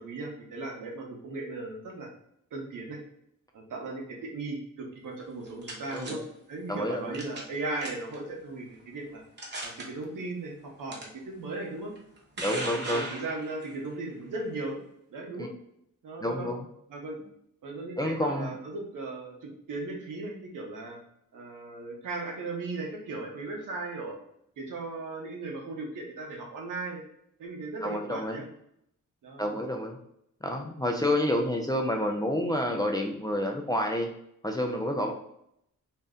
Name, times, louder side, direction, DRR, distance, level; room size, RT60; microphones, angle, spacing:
voice 1, 0.0-2.1 2.5-3.0 3.5-6.2 6.5-9.2 9.6-10.5 10.8-11.9 12.5-14.8 15.1-15.5 16.0-16.5 16.9-17.2 17.6-21.0 21.3-24.2 24.6-27.0 27.4-28.4 29.2-29.8 30.8-30.9 35.0-35.1, right 2 dB, 75° right, 0 dB, 0.9 m, -37 dB
sound 1, 5.2-6.1 7.1-7.5 7.8-8.2 8.8-8.9 9.4-9.8 10.9-11.0 12.0-13.7, right 2 dB, 35° right, 0.9 m, -37 dB
voice 2, 5.9-6.2 6.7-7.2 12.4-13.0 15.4-15.5 16.2-16.6 18.0-18.5 27.8-28.4 29.4-30.0 30.4-34.1 34.4-35.1, left 1 dB, 15° left, 1 dB, 0.3 m, -29 dB
2.6 x 2.1 x 3.5 m, 0.74 s
cardioid pair, 105°, 32 cm